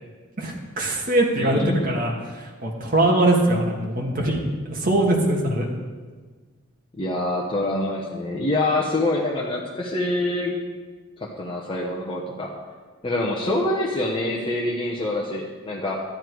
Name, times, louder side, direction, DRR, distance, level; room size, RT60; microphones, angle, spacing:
voice 1, 0.4-4.4 4.7-5.7, right 1 dB, 40° right, -1 dB, 1.8 m, -22 dB
voice 2, 1.4-1.9 7.0-10.5 11.2-12.5 13.0-16.0, left 1 dB, 25° left, -3 dB, 1.0 m, -25 dB
12.0 x 9.9 x 4.7 m, 1.4 s
head